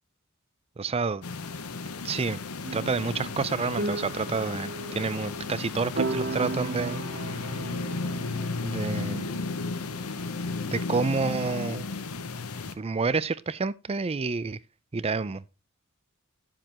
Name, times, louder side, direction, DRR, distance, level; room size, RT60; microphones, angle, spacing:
voice 1, 0.8-1.2 2.0-2.4 2.7-7.0 8.6-9.3 10.7-11.9 12.8-14.6 14.9-15.6, right 4 dB, 25° right, 0.4 m, -29 dB
Roomtone - Bedroom, 1.2-12.7, left 4 dB, 90° left, 0.9 m, -34 dB
sound 1, 2.6-12.3, right 2 dB, 50° right, 0.9 m, -37 dB
11.0 x 7.5 x 3.0 m
head